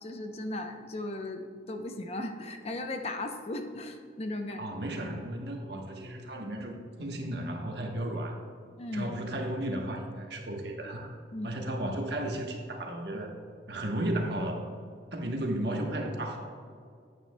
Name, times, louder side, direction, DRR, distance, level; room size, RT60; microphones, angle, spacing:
voice 1, 0.0-4.7 8.8-9.1 11.3-11.6, left 2 dB, 35° left, 6 dB, 0.6 m, -36 dB
voice 2, 4.6-8.4 8.9-11.2 11.4-13.3 13.7-14.6 15.1-16.5, right 1 dB, 70° right, 2 dB, 1.1 m, -34 dB
9.1 x 9.0 x 2.2 m, 2.2 s
head